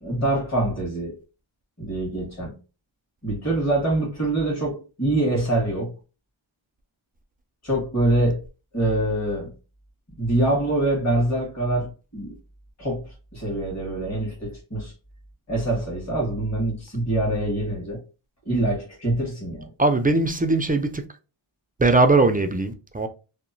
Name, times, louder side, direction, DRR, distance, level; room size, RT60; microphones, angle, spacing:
voice 1, 0.0-1.1 1.8-2.5 3.2-5.9 7.6-8.4 8.7-9.5 10.2-12.3 12.8-13.0 13.3-14.9 15.5-18.0 18.4-19.7, right 1 dB, 30° left, 1.5 m, -24 dB
voice 2, 19.8-21.0 21.8-23.1, right 2 dB, 20° right, 0.3 m, -20 dB
2.9 x 2.1 x 2.6 m
wide cardioid pair, 50°, 50 cm